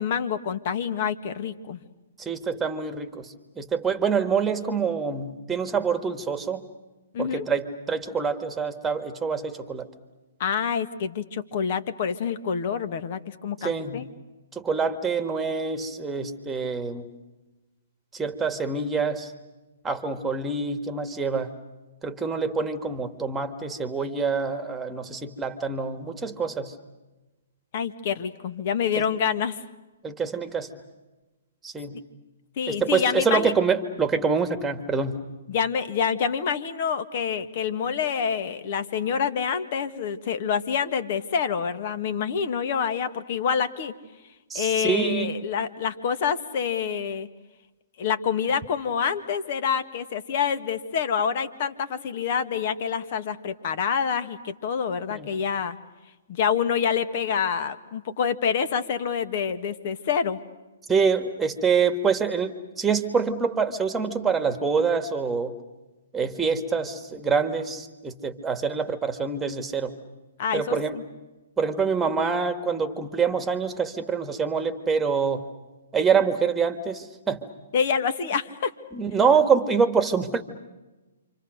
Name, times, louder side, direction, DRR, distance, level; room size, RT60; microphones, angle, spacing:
voice 1, 0.0-1.8 7.1-7.4 10.4-14.1 27.7-29.6 32.6-33.5 35.5-43.9 44.5-47.3 48.0-55.8 56.3-60.4 70.4-71.0 77.7-78.7, left 7 dB, 50° left, 10 dB, 1.8 m, -27 dB
voice 2, 2.2-6.7 7.2-9.9 13.6-14.1 14.6-17.1 18.1-19.3 19.8-21.5 22.0-26.7 28.9-29.0 30.0-30.7 31.6-32.0 32.7-35.2 44.5-45.4 55.1-55.3 60.9-65.6 66.1-69.9 70.5-71.0 71.6-75.5 75.9-77.5 78.9-80.4, right 5 dB, 10° right, 9 dB, 1.9 m, -26 dB
28.5 x 26.0 x 6.6 m, 1.1 s
hypercardioid pair, 130°, 0 cm